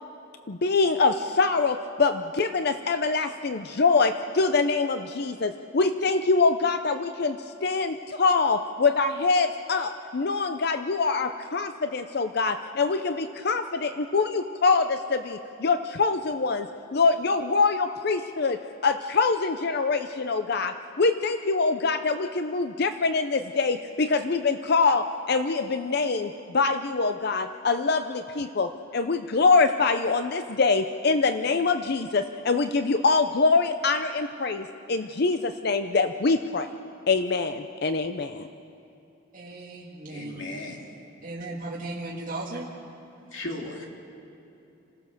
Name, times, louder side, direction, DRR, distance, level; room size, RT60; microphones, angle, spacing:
voice 1, 0.5-36.7 37.1-38.5, left 4 dB, 55° left, 9 dB, 0.6 m, -24 dB
voice 2, 39.3-40.5 41.2-42.7, right 2 dB, 40° right, -5 dB, 2.0 m, -36 dB
voice 3, 40.1-40.9 43.3-43.9, left 2 dB, 75° left, 0 dB, 2.6 m, -36 dB
26.5 x 16.5 x 6.7 m, 2.9 s
head